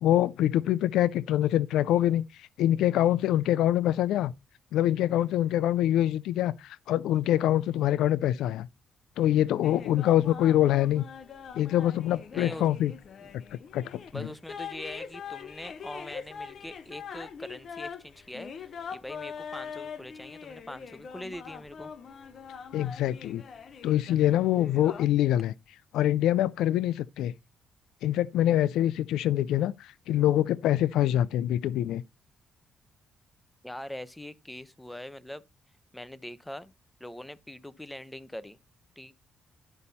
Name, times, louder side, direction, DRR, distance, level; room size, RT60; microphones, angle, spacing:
voice 1, 0.0-2.2 2.6-4.3 4.7-8.7 9.2-11.0 11.6-12.9 13.7-14.3 22.7-23.4 23.8-25.5 25.9-27.3 28.0-32.0, left 12 dB, 85° left, 0.4 m, -25 dB
sound 1, 9.6-25.1, left 6 dB, 55° left, 1.0 m, -43 dB
voice 2, 12.3-12.7 13.2-13.3 14.1-21.9 33.6-35.4 35.9-36.7 37.0-38.6 39.0-39.1, left 1 dB, 5° left, 0.8 m, -42 dB
11.5 x 5.4 x 4.2 m
cardioid pair, 90°, 0 cm